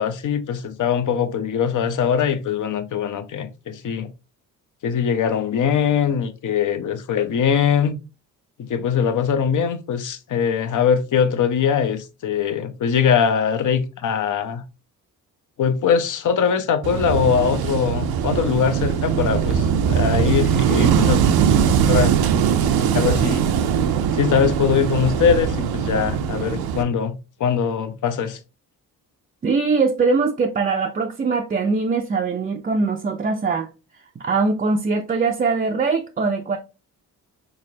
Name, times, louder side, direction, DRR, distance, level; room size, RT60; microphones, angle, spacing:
voice 1, 0.0-4.1 4.8-8.0 8.6-14.6 15.6-21.2 21.9-22.1 22.9-23.5 24.1-28.4, left 7 dB, 55° left, 0.6 m, -21 dB
Wind / Waves surf, 16.8-26.8, right 8 dB, 80° right, 0.5 m, -20 dB
voice 2, 29.4-33.7 34.2-36.6, right 4 dB, 25° right, 0.4 m, -22 dB
3.6 x 3.2 x 2.6 m
cardioid pair, 60°, 37 cm